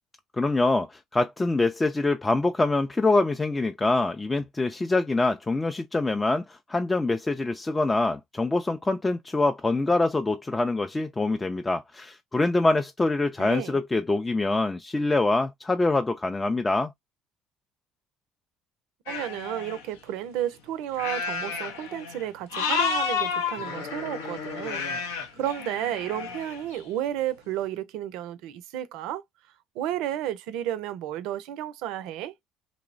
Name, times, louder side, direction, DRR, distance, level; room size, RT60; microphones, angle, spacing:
voice 1, 0.4-16.9, left 2 dB, 20° left, 0.3 m, -25 dB
voice 2, 13.4-13.8 19.1-25.0 25.4-29.2 29.8-32.3, right 12 dB, 75° right, 0.4 m, -32 dB
sound 1, 19.1-19.8 21.0-22.3 22.5-26.6, left 5 dB, 90° left, 0.6 m, -31 dB
3.0 x 2.0 x 2.4 m
supercardioid pair, 70°, 0 cm